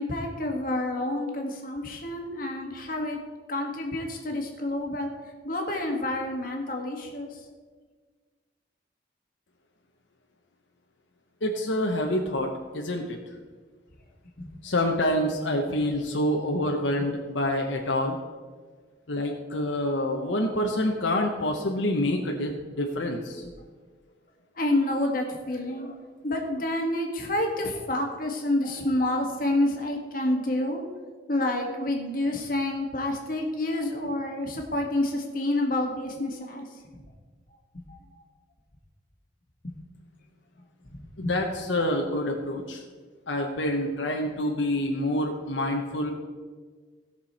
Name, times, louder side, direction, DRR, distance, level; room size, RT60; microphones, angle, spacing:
voice 1, 0.0-3.2 3.5-5.1 5.4-7.3 14.4-14.5 24.6-25.9 26.2-30.8 31.3-36.6 37.9-38.0 39.6-39.7 40.9-41.3, left 1 dB, 50° left, 1 dB, 1.7 m, -28 dB
voice 2, 11.4-13.2 14.6-18.2 19.1-22.5 22.8-23.4 41.2-42.8 43.3-46.1, left 1 dB, 85° left, 1 dB, 1.1 m, -27 dB
17.0 x 6.1 x 4.3 m, 1.5 s
head